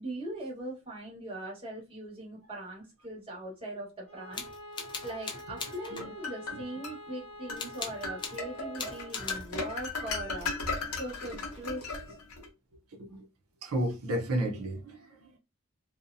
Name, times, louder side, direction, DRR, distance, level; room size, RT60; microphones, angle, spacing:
voice 1, 0.0-4.4 5.0-10.5 10.9-12.0, right 1 dB, 25° right, 1.1 m, -40 dB
Bowed string instrument, 4.1-9.2, left 1 dB, 50° right, 1.2 m, -47 dB
sound 1, 4.3-6.1 7.6-8.4 8.8-9.5, left 4 dB, 20° left, 0.3 m, -39 dB
sound 2, 5.7-7.0 7.5-7.7 8.0-12.5, left 3 dB, 85° left, 0.7 m, -36 dB
voice 2, 13.6-15.4, right 1 dB, 85° right, 0.6 m, -33 dB
2.6 x 2.0 x 2.5 m
head